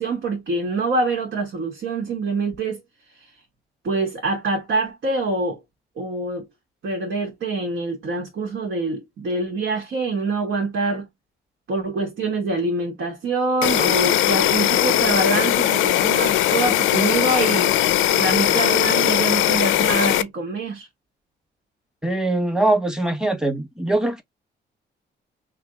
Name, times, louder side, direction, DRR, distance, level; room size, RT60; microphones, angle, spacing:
voice 1, 0.0-2.8 3.2-3.3 3.8-5.6 6.0-6.5 6.8-11.1 11.7-17.7 18.1-20.9, right 3 dB, 70° right, 1.5 m, -25 dB
Insect, 13.6-20.2, left 13 dB, 85° left, 0.5 m, -19 dB
voice 2, 22.0-24.2, right 2 dB, 5° right, 1.1 m, -22 dB
3.3 x 2.7 x 3.5 m
cardioid pair, 90°, 20 cm